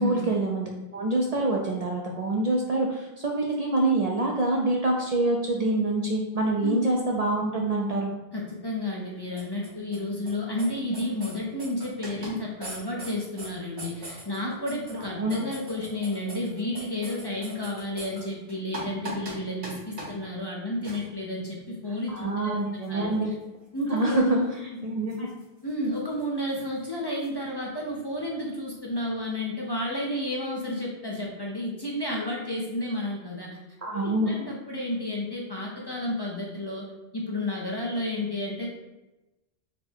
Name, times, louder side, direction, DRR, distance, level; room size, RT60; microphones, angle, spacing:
voice 1, 0.0-8.1 15.1-15.4 22.1-23.3 23.9-24.4 24.8-25.3 33.8-34.3, right 2 dB, 55° right, -1 dB, 0.4 m, -26 dB
voice 2, 8.3-22.6 22.9-23.3 23.7-24.5 25.6-33.5 33.9-36.8 37.1-38.7, left 1 dB, 30° left, -3 dB, 0.5 m, -31 dB
sound 1, 9.4-10.0 10.3-10.4 10.6-10.7 10.9-12.3 12.6-13.5 13.8-18.2 18.5-19.3 19.6-19.7 20.0-20.1 20.8-21.0 22.8-22.9 25.1-25.4 26.2-26.3 26.5-26.6 27.2-27.3, right 2 dB, 85° right, 1.7 m, -39 dB
4.2 x 2.2 x 4.3 m, 1.0 s
omnidirectional pair, 1.1 m